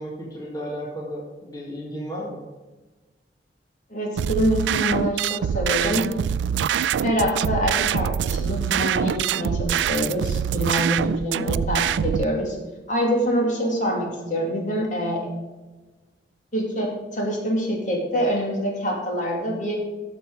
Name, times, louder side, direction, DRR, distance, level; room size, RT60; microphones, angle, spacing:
voice 1, 0.0-2.5, equal, 20° left, -4 dB, 1.9 m, -34 dB
voice 2, 3.9-6.2 7.0-12.6 12.9-15.3 16.5-19.8, equal, 45° left, 0 dB, 2.5 m, -25 dB
sound 1, 4.2-12.2, right 8 dB, 85° right, 0.3 m, -24 dB
12.5 x 6.9 x 4.8 m, 1.2 s
head